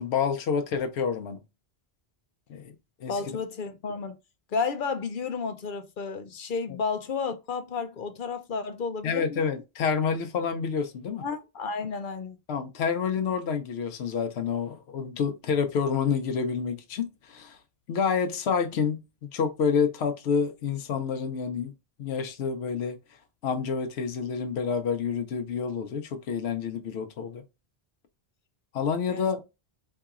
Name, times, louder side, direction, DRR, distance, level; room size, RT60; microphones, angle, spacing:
voice 1, 0.0-1.4 2.5-2.7 3.0-3.2 9.0-11.2 12.5-17.6 17.9-21.7 22.0-23.0 23.4-27.4 28.7-29.4, left 6 dB, 85° left, 0.9 m, -28 dB
voice 2, 3.1-4.1 4.5-9.4 11.2-12.4 29.1-29.2, left 5 dB, 60° left, 0.7 m, -32 dB
4.5 x 2.8 x 2.4 m
omnidirectional pair, 1.0 m